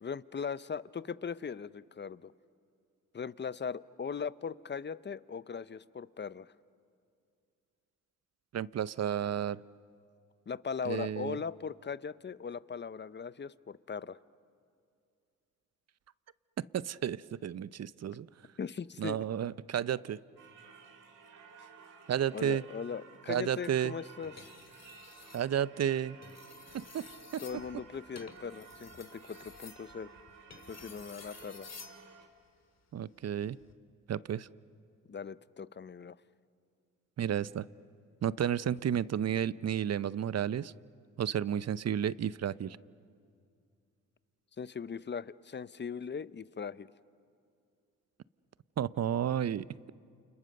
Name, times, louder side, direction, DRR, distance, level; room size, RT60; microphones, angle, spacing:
voice 1, 0.0-2.3 3.1-6.5 10.5-14.2 18.6-19.2 22.3-24.5 27.4-30.1 30.7-31.7 35.1-36.2 44.6-46.9, left 6 dB, 30° left, 17 dB, 0.7 m, -39 dB
voice 2, 8.5-9.6 10.9-11.4 16.7-18.3 19.0-20.2 22.1-22.6 23.3-24.0 25.3-26.2 26.7-27.0 27.3-27.4 32.9-33.6 34.1-34.5 37.2-37.7 38.2-40.7 41.2-42.8 48.8-49.9, right 9 dB, 50° right, 18 dB, 0.7 m, -32 dB
Singing / Church bell, 20.4-32.3, right 5 dB, 65° right, 3.3 m, -54 dB
sound 1, 24.2-25.5 26.1-32.0 33.5-33.7, left 5 dB, 50° left, 2.6 m, -52 dB
29.5 x 28.5 x 6.7 m, 2.4 s
cardioid pair, 65°, 34 cm